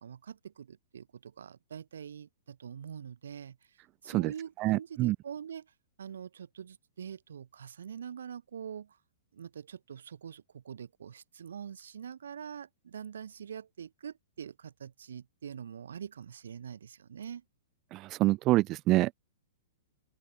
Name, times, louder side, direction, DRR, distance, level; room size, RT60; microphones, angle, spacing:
voice 1, 0.0-9.0 9.3-17.4, right 8 dB, 85° right, 7.2 m, -44 dB
voice 2, 4.6-5.2 17.9-19.1, right 18 dB, 35° right, 0.4 m, -26 dB
open air
hypercardioid pair, 140°, 0 cm